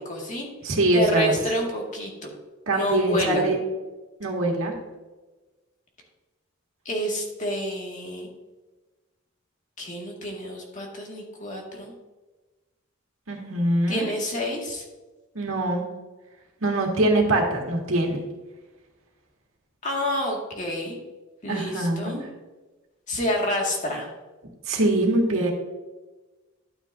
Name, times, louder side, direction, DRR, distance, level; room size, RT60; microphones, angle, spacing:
voice 1, 0.1-0.5 0.9-2.3 2.7-3.4 6.9-8.3 9.8-11.9 13.9-14.8 19.8-21.0 21.4-22.2 23.1-24.1, equal, 35° left, 0 dB, 1.9 m, -28 dB
voice 2, 0.6-1.3 2.7-3.6 4.2-4.7 13.3-14.1 15.4-15.8 16.6-18.2 21.5-22.2 24.7-25.5, right 2 dB, 75° right, 0 dB, 1.9 m, -23 dB
11.5 x 8.9 x 2.6 m, 1.2 s
head